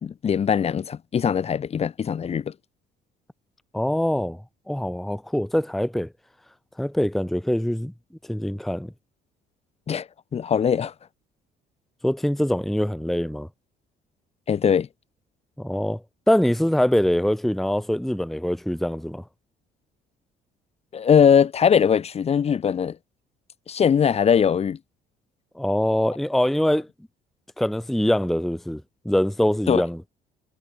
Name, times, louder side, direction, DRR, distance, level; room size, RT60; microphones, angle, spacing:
voice 1, 0.0-2.5 9.9-10.9 14.5-14.9 20.9-23.0 23.7-24.8 29.7-29.8, left 7 dB, 40° left, 1.2 m, -21 dB
voice 2, 3.7-4.4 4.7-6.1 6.8-7.9 8.3-8.9 12.0-13.5 15.6-19.2 25.5-26.9 27.6-30.0, left 1 dB, ahead, 0.8 m, -23 dB
cardioid pair, 110°, 17 cm